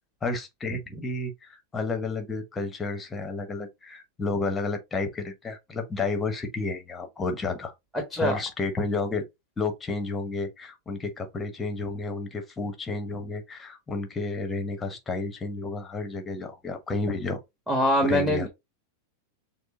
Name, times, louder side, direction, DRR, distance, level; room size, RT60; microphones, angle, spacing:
voice 1, 0.2-7.7 8.2-9.2 9.6-17.4 18.1-18.5, left 3 dB, 15° left, 1.1 m, -31 dB
voice 2, 17.7-18.5, equal, 5° right, 1.4 m, -23 dB
6.5 x 2.2 x 3.6 m
figure-of-eight pair, 90°, 0 cm